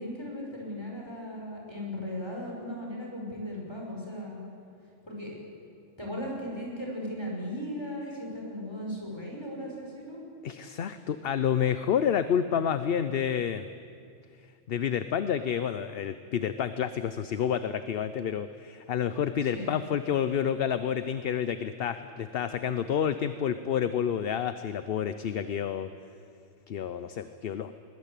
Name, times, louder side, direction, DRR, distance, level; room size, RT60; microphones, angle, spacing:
voice 1, 0.0-4.4 5.1-5.4 6.0-10.2 19.5-19.7, equal, 20° left, -2 dB, 5.7 m, -37 dB
voice 2, 10.4-13.7 14.7-25.9 26.7-27.7, left 8 dB, 55° left, 11 dB, 0.9 m, -29 dB
21.5 x 20.5 x 8.3 m, 2.4 s
omnidirectional pair, 1.2 m